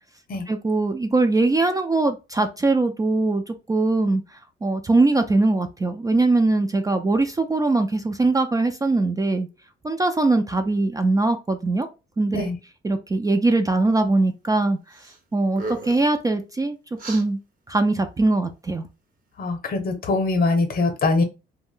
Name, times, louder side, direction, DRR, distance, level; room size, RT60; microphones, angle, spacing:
voice 1, 0.5-9.5 9.8-11.9 12.2-12.5 12.8-15.0 15.3-16.8 17.1-17.4 17.7-18.8, right 2 dB, 20° right, 0.3 m, -21 dB
sound 1, 14.9-15.2 15.5-16.1 17.0-17.2, right 2 dB, 45° right, 0.8 m, -35 dB
voice 2, 19.4-21.2, left 3 dB, 50° left, 0.8 m, -22 dB
2.4 x 2.1 x 3.6 m
cardioid pair, 90°, 20 cm